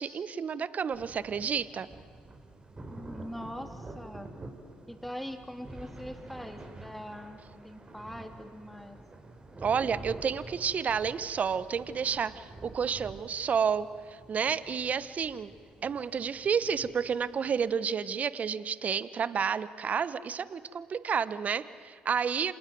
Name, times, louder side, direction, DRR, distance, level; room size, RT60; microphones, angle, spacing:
voice 1, 0.0-1.9 9.6-15.5 15.8-22.5, right 6 dB, 50° right, 16 dB, 1.0 m, -30 dB
sound 1, 0.9-17.7, right 2 dB, 30° right, 4.2 m, -48 dB
voice 2, 2.9-4.3 4.9-9.0, equal, 5° left, 6 dB, 3.3 m, -42 dB
27.0 x 19.0 x 9.3 m, 2.1 s
hypercardioid pair, 55°, 3 cm